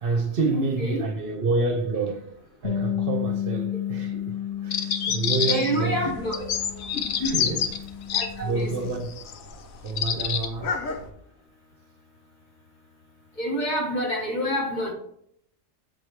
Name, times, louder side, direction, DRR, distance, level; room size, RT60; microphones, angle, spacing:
voice 1, 0.0-2.3 2.6-6.0 7.3-7.7 8.4-9.1 9.8-10.7, right 3 dB, 50° right, 0.9 m, -28 dB
voice 2, 0.5-1.1 5.4-6.5 7.2-7.5 8.1-8.9 13.4-14.9, equal, 35° left, 1.5 m, -28 dB
Bass guitar, 2.6-8.9, left 10 dB, 50° left, 0.4 m, -32 dB
sound 1, 4.7-5.8 6.3-8.3 9.1-9.3 9.9-10.5, left 8 dB, 65° left, 0.9 m, -26 dB
sound 2, 5.7-11.1, left 3 dB, 85° left, 1.2 m, -39 dB
6.9 x 4.8 x 3.2 m
omnidirectional pair, 1.4 m